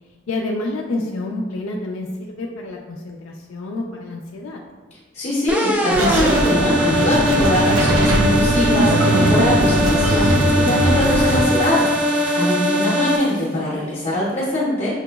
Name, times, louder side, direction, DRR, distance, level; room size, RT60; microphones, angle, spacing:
voice 1, 0.3-4.6 12.3-13.2, left 2 dB, 80° left, 0 dB, 0.4 m, -28 dB
voice 2, 5.1-11.9 12.3-15.0, left 1 dB, 35° left, -7 dB, 0.6 m, -22 dB
sound 1, 5.5-13.2, equal, 5° right, 0.3 m, -20 dB
sound 2, 5.9-11.4, right 1 dB, 90° right, 0.5 m, -19 dB
sound 3, 7.3-14.4, right 1 dB, 45° right, 0.7 m, -36 dB
5.7 x 2.9 x 2.3 m, 1.4 s
head